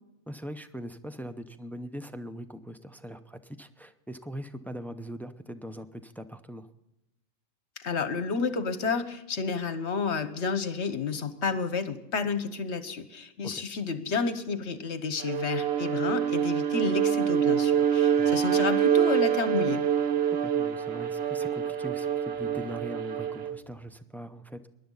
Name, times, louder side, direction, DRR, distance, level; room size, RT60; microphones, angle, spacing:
voice 1, 0.3-6.7 13.4-13.6 18.2-18.3 20.4-24.7, equal, ahead, 10 dB, 0.4 m, -41 dB
voice 2, 7.8-19.8, left 5 dB, 60° left, 10 dB, 1.4 m, -30 dB
Bowed string instrument, 15.2-23.6, right 9 dB, 55° right, 0.9 m, -26 dB
20.0 x 11.5 x 3.9 m, 0.90 s
omnidirectional pair, 1.4 m